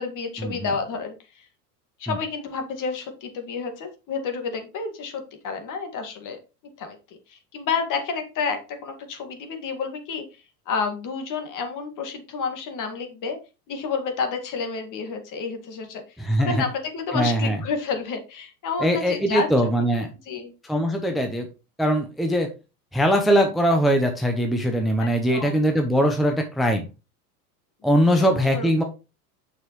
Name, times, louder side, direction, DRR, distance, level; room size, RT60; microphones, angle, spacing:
voice 1, 0.0-1.5 2.0-6.4 6.8-10.2 10.7-13.4 13.7-16.0 16.4-19.9 20.3-20.5 25.0-25.6 28.4-28.7, left 5 dB, 40° left, 6 dB, 2.0 m, -30 dB
voice 2, 16.2-16.6 17.1-17.6 18.8-20.1 20.6-21.5 21.8-22.5 22.9-26.9 27.8-28.8, equal, ahead, 4 dB, 0.8 m, -21 dB
6.7 x 6.3 x 3.1 m, 0.30 s
hypercardioid pair, 95°, 47 cm